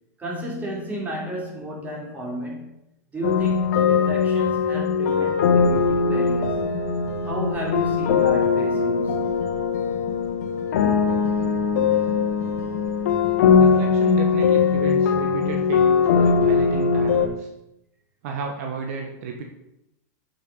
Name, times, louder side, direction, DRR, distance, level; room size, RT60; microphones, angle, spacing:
voice 1, 0.2-2.7 3.1-6.6 7.2-9.2, equal, 15° right, 3.3 m, -32 dB
sound 1, 3.2-17.3, left 6 dB, 65° left, 1.4 m, -20 dB
voice 2, 13.6-17.5 18.2-19.4, right 4 dB, 60° right, 1.3 m, -32 dB
7.3 x 6.5 x 5.3 m
hypercardioid pair, 135°, 9 cm